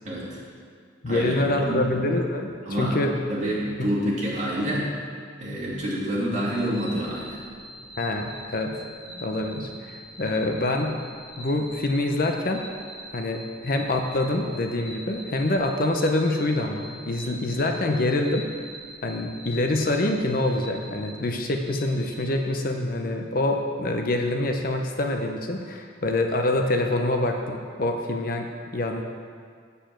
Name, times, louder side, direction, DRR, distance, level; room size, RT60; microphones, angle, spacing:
voice 1, 0.0-0.4 1.1-1.9 2.7-3.0 3.3-4.9 5.4-7.4, equal, 35° right, -6 dB, 2.3 m, -28 dB
voice 2, 1.0-3.1 8.0-8.8 9.2-11.0 11.4-12.7 13.1-18.5 19.0-29.0, left 2 dB, 45° left, 4 dB, 0.6 m, -26 dB
sound 1, 6.5-22.4, right 1 dB, 10° right, 2.8 m, -43 dB
7.2 x 6.9 x 7.6 m, 2.1 s
head